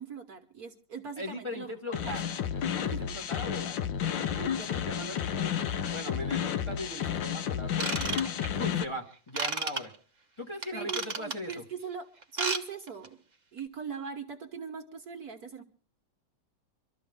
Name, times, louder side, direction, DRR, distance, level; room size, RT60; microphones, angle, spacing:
voice 1, 0.0-1.7 2.0-2.2 2.7-3.0 4.6-4.7 10.7-13.2 13.5-15.6, right 6 dB, 55° right, 4 dB, 1.5 m, -40 dB
voice 2, 1.2-8.2 8.5-9.9 10.4-11.6, left 1 dB, 15° left, 2 dB, 1.6 m, -40 dB
sound 1, 1.9-8.8, left 9 dB, 75° left, 1.6 m, -31 dB
Ratchet pawl / Tools, 7.7-8.7 9.3-9.8 10.6-11.5 12.2-12.6 12.9-13.1 13.6-13.7, right 4 dB, 30° right, 1.1 m, -32 dB
24.5 x 13.0 x 3.6 m, 0.38 s
omnidirectional pair, 2.1 m